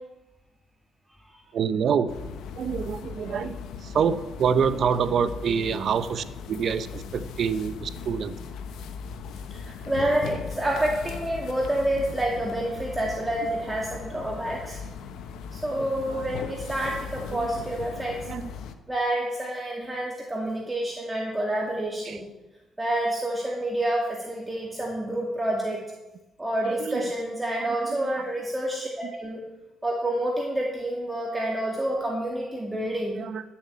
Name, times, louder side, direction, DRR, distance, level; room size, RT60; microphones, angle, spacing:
voice 1, 1.5-2.1 2.6-8.4 15.8-16.4 17.3-17.5 18.3-18.5 22.0-22.2 26.6-27.1 27.6-28.2 29.0-29.1 33.2-33.4, right 7 dB, 60° right, 13 dB, 0.8 m, -27 dB
sound 1, 2.1-18.7, left 6 dB, 80° left, 1.0 m, -38 dB
voice 2, 9.5-14.8 15.5-18.3 18.9-22.2 22.8-25.8 26.4-29.4 29.8-33.2, right 1 dB, 15° right, -2 dB, 2.2 m, -28 dB
12.0 x 7.2 x 8.4 m, 1.1 s
cardioid pair, 90°, 0 cm